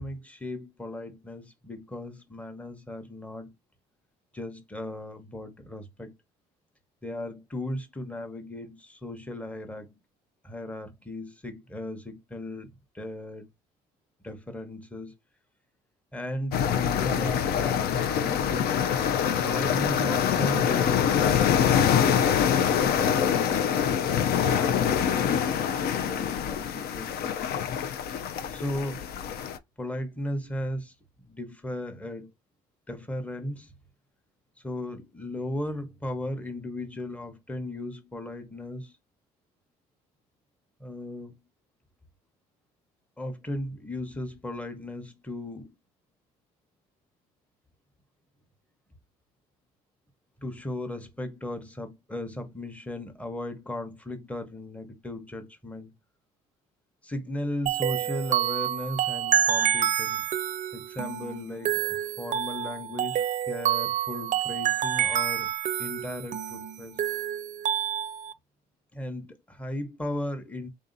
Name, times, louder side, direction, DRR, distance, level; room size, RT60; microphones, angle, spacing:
voice 1, 0.0-3.5 4.3-6.2 7.0-10.0 10.4-13.5 14.2-15.1 16.1-18.7 19.4-27.4 28.5-29.0 29.8-32.3 32.9-33.7 34.6-38.9 40.8-41.3 43.2-45.7 50.4-55.9 57.0-60.3 60.7-65.5 65.8-67.0 68.9-70.7, left 1 dB, 10° left, 0.9 m, -36 dB
sound 1, 16.5-29.6, left 8 dB, 65° left, 0.5 m, -25 dB
sound 2, 57.7-68.3, right 10 dB, 45° right, 0.4 m, -28 dB
3.6 x 2.7 x 3.9 m
cardioid pair, 110°, 17 cm